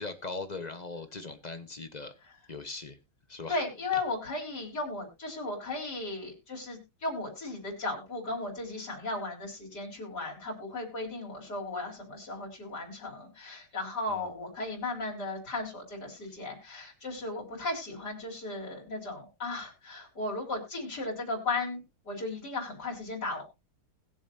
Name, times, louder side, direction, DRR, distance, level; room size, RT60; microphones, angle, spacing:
voice 1, 0.0-2.1 2.5-3.0 3.3-3.6 3.9-4.0 14.1-14.3 16.3-16.4, left 3 dB, 30° left, 9 dB, 0.8 m, -40 dB
voice 2, 3.5-23.4, left 2 dB, 50° left, -1 dB, 4.7 m, -36 dB
21.0 x 7.2 x 2.7 m, 0.25 s
omnidirectional pair, 2.2 m